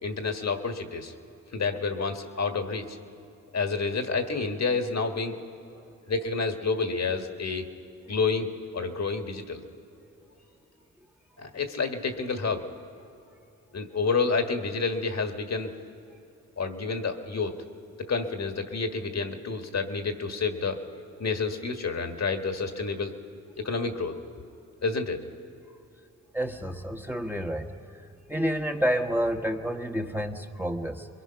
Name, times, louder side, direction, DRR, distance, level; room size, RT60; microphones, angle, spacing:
voice 1, 0.0-1.1 1.5-3.0 3.5-5.4 6.1-7.7 8.1-9.6 11.4-12.6 13.7-15.7 16.6-17.6 18.0-20.8 21.2-23.2 23.6-24.2 24.8-25.2, left 4 dB, 55° left, 5 dB, 1.7 m, -29 dB
voice 2, 26.3-27.7 28.3-31.1, equal, 5° right, 2 dB, 1.3 m, -29 dB
23.0 x 22.0 x 5.8 m, 2.8 s
cardioid pair, 55°, 33 cm